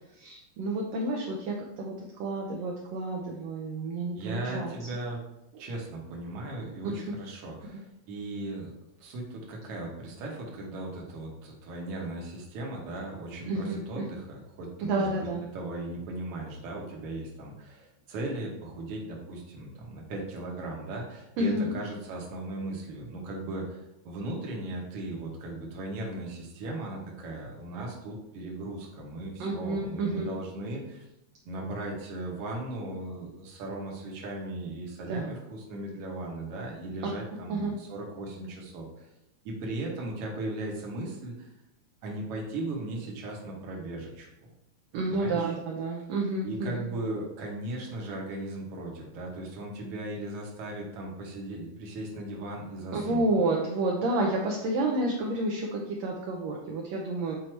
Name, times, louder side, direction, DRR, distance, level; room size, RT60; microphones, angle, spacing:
voice 1, 0.1-1.9 2.2-4.9 5.5-5.6 6.9-7.0 13.5-14.1 14.8-15.4 21.4-21.8 29.4-30.3 35.1-35.3 37.0-37.1 37.5-37.7 44.9-46.9 52.9-57.4, right 2 dB, 75° right, -1 dB, 1.7 m, -30 dB
voice 2, 4.2-5.2 5.6-8.7 9.0-15.1 15.5-31.0 31.5-39.1 39.5-41.5 42.0-44.3 44.9-45.5 46.4-53.3, right 2 dB, 60° right, -1 dB, 1.9 m, -37 dB
7.8 x 2.8 x 4.4 m, 0.88 s
omnidirectional pair, 3.5 m